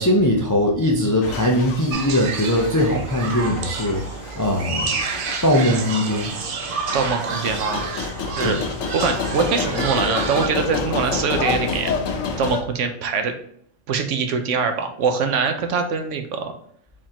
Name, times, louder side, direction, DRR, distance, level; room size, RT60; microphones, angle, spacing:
voice 1, 0.0-4.9 5.4-6.3 8.4-8.6, left 1 dB, 30° left, 0 dB, 0.3 m, -20 dB
sound 1, 1.2-12.6, left 4 dB, 85° left, 1.2 m, -29 dB
sound 2, 1.9-10.5, right 5 dB, 55° right, 0.7 m, -30 dB
voice 2, 6.7-8.1 8.4-8.6 8.9-11.9 12.4-13.3 13.9-16.5, right 5 dB, 70° right, 6 dB, 1.0 m, -23 dB
4.9 x 3.6 x 2.9 m, 0.65 s
omnidirectional pair, 1.3 m